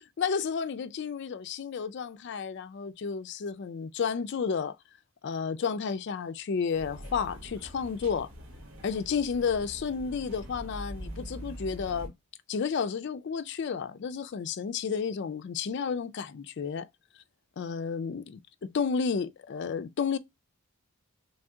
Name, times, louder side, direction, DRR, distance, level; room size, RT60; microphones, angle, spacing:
voice 1, 0.2-4.8 5.2-8.3 8.8-12.1 12.5-16.9 17.6-20.2, left 6 dB, 50° left, 0.3 m, -31 dB
sound 1, 6.7-12.1, equal, 65° right, 0.9 m, -43 dB
3.4 x 2.7 x 2.3 m
head